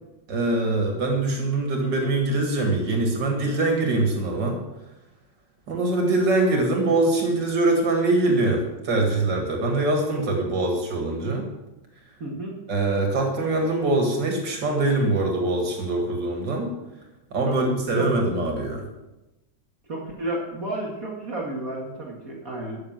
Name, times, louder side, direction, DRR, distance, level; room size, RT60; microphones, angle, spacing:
voice 1, 0.3-4.6 5.7-11.5 12.7-16.7 17.3-18.9, right 2 dB, 85° right, 2 dB, 2.6 m, -23 dB
voice 2, 12.2-12.6 17.5-18.1 19.9-22.8, right 1 dB, 55° right, -3 dB, 2.4 m, -32 dB
13.0 x 6.7 x 7.4 m, 1.0 s
omnidirectional pair, 1.9 m